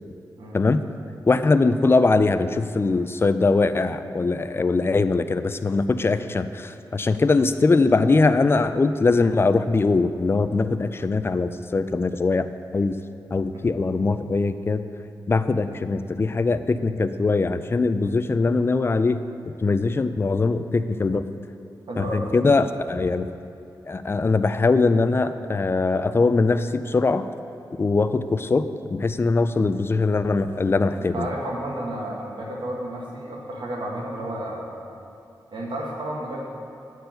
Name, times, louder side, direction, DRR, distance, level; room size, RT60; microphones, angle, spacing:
voice 1, 1.3-12.5 12.7-12.9 13.3-14.8 15.3-19.2 19.6-21.2 22.0-23.3 23.9-27.2 27.8-31.3, left 3 dB, 30° left, 11 dB, 0.4 m, -21 dB
voice 2, 21.9-22.3 31.0-34.7 35.5-36.5, right 1 dB, 75° right, -2 dB, 1.7 m, -32 dB
9.5 x 4.6 x 7.6 m, 2.6 s
wide cardioid pair, 100°, 8 cm